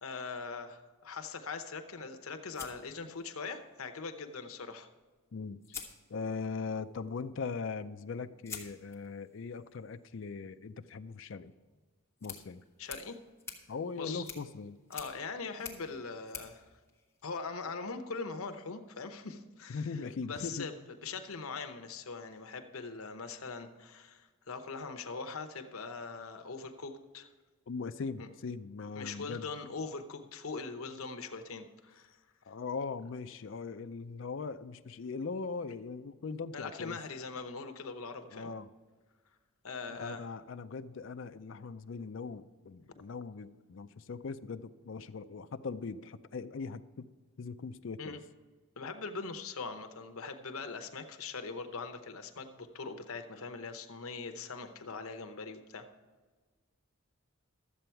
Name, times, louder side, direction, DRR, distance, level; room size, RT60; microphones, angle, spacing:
voice 1, 0.0-4.9 12.8-13.2 14.0-14.2 14.9-16.7 17.2-19.8 20.3-20.7 21.0-27.3 28.2-28.3 29.0-32.1 36.5-38.5 39.6-40.2 48.0-48.2 48.8-55.9, left 4 dB, 80° left, 7 dB, 0.9 m, -41 dB
sound 1, 2.5-3.7 5.0-5.1 5.6-6.6 8.4-17.6, left 6 dB, 10° left, 1.3 m, -50 dB
voice 2, 5.3-5.8 6.1-11.5 12.2-12.6 13.7-14.8 19.7-20.7 27.7-29.5 32.5-37.0 38.3-38.7 39.9-47.1 47.4-48.2, left 4 dB, 60° left, 9 dB, 0.4 m, -40 dB
12.5 x 7.8 x 4.6 m, 1.3 s
head